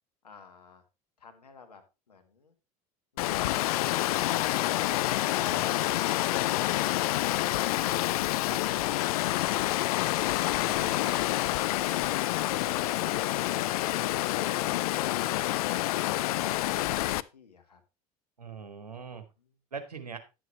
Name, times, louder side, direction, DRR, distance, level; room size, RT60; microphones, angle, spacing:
voice 1, 0.2-0.8 1.2-1.8 2.1-2.5 19.4-19.6, left 5 dB, 90° left, 6 dB, 1.4 m, -51 dB
Water, 3.2-17.2, left 16 dB, 70° left, 0.4 m, -28 dB
voice 2, 10.7-11.0 18.4-19.2 19.7-20.2, right 5 dB, 90° right, 7 dB, 1.3 m, -41 dB
10.5 x 7.7 x 3.1 m, 0.28 s
hypercardioid pair, 75°, 20 cm